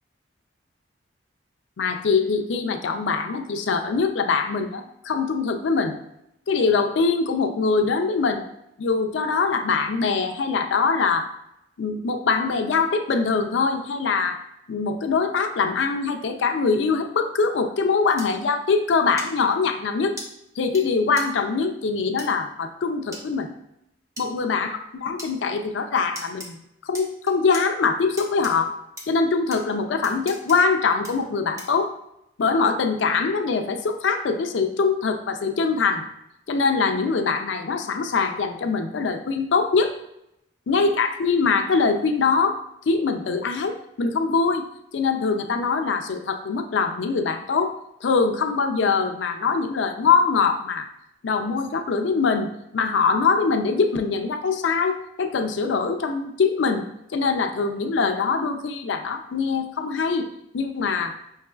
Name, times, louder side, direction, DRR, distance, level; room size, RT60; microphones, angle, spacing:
voice 1, 1.8-6.0 6.5-8.5 8.8-11.3 11.8-14.4 14.7-20.2 20.6-23.5 24.2-26.6 26.8-28.7 29.1-31.9 32.4-36.1 36.5-39.9 40.7-42.6 42.9-44.7 44.9-47.7 48.0-50.9 51.2-60.3 60.5-61.1, left 4 dB, 85° left, 6 dB, 0.4 m, -23 dB
sound 1, 18.2-18.3 19.2-19.3 20.2-20.3 20.7-20.8 21.2-21.3 22.2-22.3 23.1-23.2 24.2-24.3 25.2-25.3 26.1-26.5 26.9-27.6 28.2-28.5 29.0-29.1 29.5-29.6 30.0-30.6 31.0-31.1 31.6-31.8, equal, 15° right, 0.7 m, -36 dB
5.6 x 3.0 x 2.3 m, 0.83 s
head